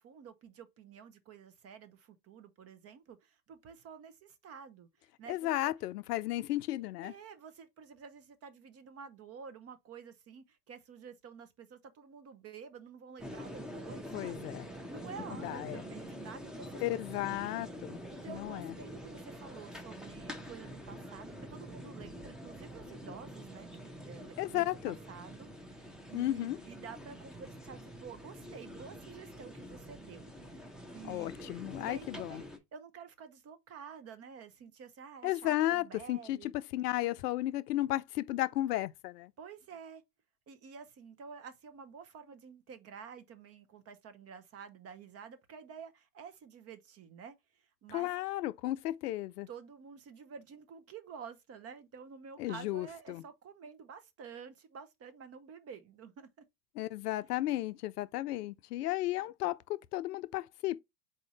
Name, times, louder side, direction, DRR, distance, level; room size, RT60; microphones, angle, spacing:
voice 1, 0.0-4.9 5.2-5.7 7.0-17.1 18.1-30.6 30.9-31.4 31.8-36.5 39.4-40.0 40.5-48.1 49.5-56.3, right 6 dB, 30° right, 0.8 m, -50 dB
voice 2, 5.3-7.1 14.1-14.7 15.4-15.8 16.8-18.0 18.3-18.7 24.4-25.0 26.1-26.6 31.1-32.3 35.2-39.3 47.9-49.5 52.4-53.2 56.8-60.8, left 15 dB, 80° left, 0.6 m, -34 dB
sound 1, 13.2-32.6, equal, ahead, 0.7 m, -46 dB
4.2 x 2.6 x 4.9 m
hypercardioid pair, 90°, 46 cm